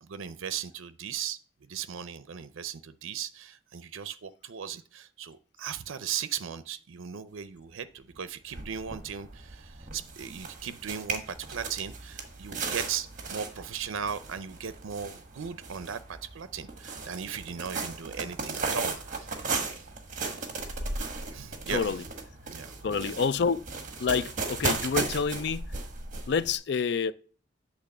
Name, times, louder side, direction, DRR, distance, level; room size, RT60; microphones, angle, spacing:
voice 1, 0.0-1.4 1.7-19.3 19.6-19.9 21.3-22.0 22.5-23.1, right 7 dB, 80° right, 0.5 m, -37 dB
sound 1, 8.1-8.2 8.5-26.6, right 4 dB, 40° right, 1.3 m, -36 dB
voice 2, 21.7-22.0 22.8-23.6 24.0-25.7 26.3-27.1, left 5 dB, 55° left, 0.4 m, -28 dB
8.3 x 3.5 x 6.4 m
head